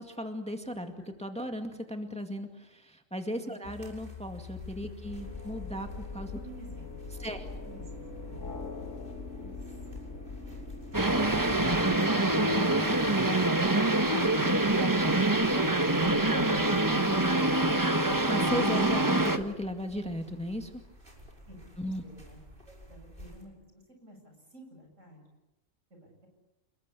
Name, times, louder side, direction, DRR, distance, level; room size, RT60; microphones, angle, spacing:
voice 1, 0.0-6.4 7.2-7.4 18.3-20.7 21.8-22.0, equal, 5° left, 5 dB, 2.1 m, -36 dB
sound 1, 3.6-23.4, left 2 dB, 45° right, 6.0 m, -51 dB
sound 2, 5.0-11.8, left 3 dB, 75° left, 2.8 m, -42 dB
voice 2, 6.3-6.9 7.2-8.6 9.3-9.7 21.5-22.4 22.6-25.2 25.9-26.3, right 1 dB, 75° right, 2 dB, 8.3 m, -53 dB
sound 3, 10.9-19.4, right 2 dB, 15° right, 1.3 m, -25 dB
29.0 x 21.0 x 8.6 m, 0.98 s
omnidirectional pair, 1.3 m